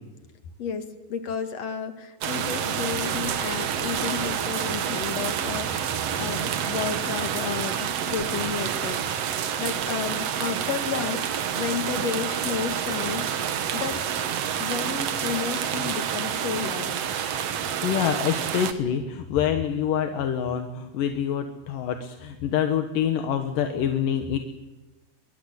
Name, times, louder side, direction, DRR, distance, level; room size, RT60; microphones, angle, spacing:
voice 1, 0.6-5.9 6.1-14.1 14.6-17.0, left 6 dB, 50° left, 8 dB, 3.0 m, -32 dB
sound 1, 2.2-18.7, right 8 dB, 55° right, 2.0 m, -28 dB
voice 2, 17.5-24.4, left 9 dB, 75° left, 6 dB, 3.0 m, -26 dB
23.5 x 22.5 x 8.3 m, 1.1 s
omnidirectional pair, 4.0 m